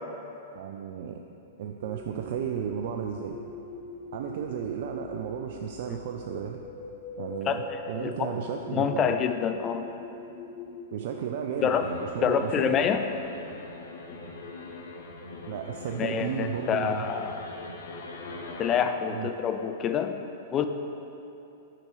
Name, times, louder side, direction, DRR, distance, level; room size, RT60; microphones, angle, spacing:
voice 1, 0.5-1.2 1.6-3.4 4.1-6.6 7.2-9.2 10.9-12.7 15.5-17.3 19.1-19.3, right 8 dB, 60° right, 3 dB, 0.3 m, -34 dB
sound 1, 1.8-12.8, left 3 dB, ahead, 1.4 m, -43 dB
voice 2, 7.5-8.3 8.7-9.8 11.6-11.9 12.2-13.1 16.0-17.4 18.6-20.2 20.5-20.7, left 7 dB, 30° left, 8 dB, 0.4 m, -27 dB
sound 2, 11.6-18.8, left 3 dB, 70° left, 0.7 m, -42 dB
8.6 x 5.8 x 3.1 m, 2.9 s
figure-of-eight pair, 105°, 0 cm